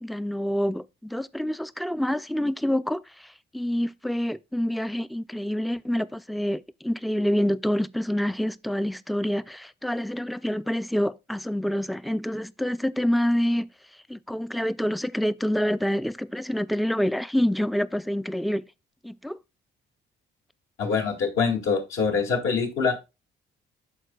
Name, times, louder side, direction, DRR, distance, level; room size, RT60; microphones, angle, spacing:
voice 1, 0.0-13.7 14.1-18.6 19.0-19.4, equal, ahead, 0.3 m, -27 dB
voice 2, 20.8-23.0, left 5 dB, 80° left, 2.1 m, -24 dB
13.0 x 4.4 x 2.3 m
cardioid pair, 90°, 20 cm